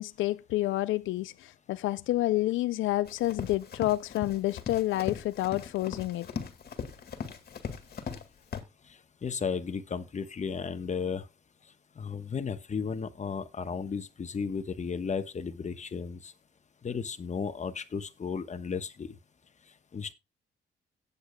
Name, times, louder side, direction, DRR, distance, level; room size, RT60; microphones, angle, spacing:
voice 1, 0.0-6.3, left 16 dB, 80° left, 0.4 m, -29 dB
Run, 3.1-8.2 8.5-8.6, left 6 dB, 50° left, 2.0 m, -39 dB
voice 2, 9.2-11.2 12.0-16.3 16.8-19.1 19.9-20.1, left 6 dB, 35° left, 1.2 m, -34 dB
17.5 x 8.4 x 2.2 m
cardioid pair, 90°, 20 cm